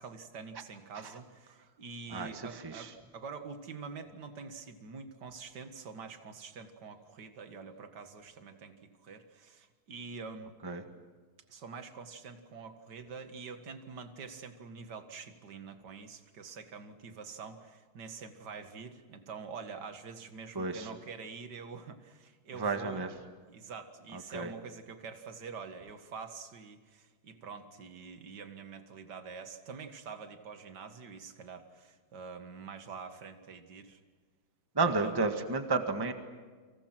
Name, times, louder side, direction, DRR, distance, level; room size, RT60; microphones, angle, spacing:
voice 1, 0.0-10.6 11.5-23.1 23.5-34.0 34.8-35.2, right 5 dB, 50° right, 7 dB, 2.3 m, -46 dB
voice 2, 2.1-2.9 10.6-10.8 20.5-20.9 22.5-23.1 24.1-24.5 34.7-36.1, right 3 dB, 10° right, 6 dB, 1.5 m, -32 dB
30.0 x 26.0 x 6.1 m, 1.4 s
omnidirectional pair, 2.4 m